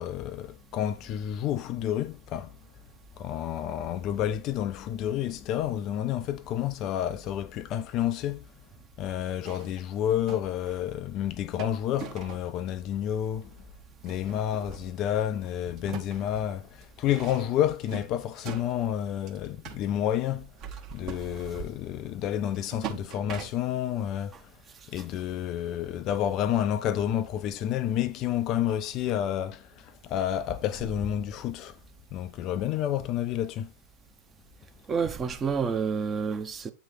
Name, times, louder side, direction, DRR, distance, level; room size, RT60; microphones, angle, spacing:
voice 1, 0.0-2.5 3.2-8.5 9.0-13.6 14.0-20.5 20.9-24.5 24.9-31.8 32.1-33.7, left 11 dB, 35° left, 0.3 m, -30 dB
sound 1, 9.4-10.8 11.6-12.5 13.3-13.4 14.0-15.4 15.6-19.9 20.4-21.9 22.5-23.9, right 8 dB, 35° right, 1.0 m, -42 dB
voice 2, 34.9-36.7, right 6 dB, 20° right, 0.7 m, -29 dB
8.8 x 3.1 x 4.1 m
figure-of-eight pair, 90°, 0 cm